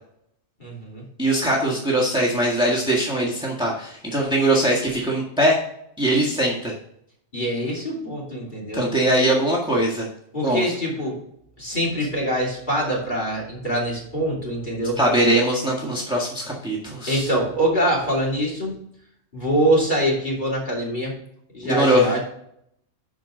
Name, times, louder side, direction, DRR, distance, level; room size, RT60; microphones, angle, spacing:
voice 1, 0.6-1.0 7.3-8.9 10.3-11.2 11.6-15.0 17.1-18.8 19.3-21.1 21.5-22.2, right 1 dB, 40° left, -4 dB, 3.2 m, -24 dB
voice 2, 1.2-5.6 6.0-6.7 8.7-10.1 10.4-10.7 15.0-17.3 21.6-22.2, right 1 dB, 5° right, -4 dB, 1.7 m, -21 dB
12.0 x 4.7 x 3.8 m, 0.71 s
omnidirectional pair, 1.3 m